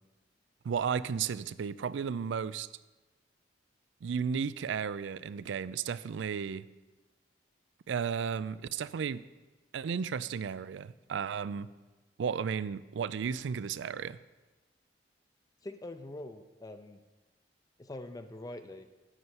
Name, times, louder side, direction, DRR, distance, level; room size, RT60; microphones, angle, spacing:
voice 1, 0.6-2.7 4.0-6.7 7.9-9.2 9.7-11.7 12.2-14.2, right 6 dB, 80° right, 17 dB, 0.4 m, -34 dB
voice 2, 15.6-17.0 17.8-18.9, left 1 dB, 20° left, 9 dB, 0.4 m, -44 dB
9.9 x 5.5 x 7.8 m, 1.2 s
head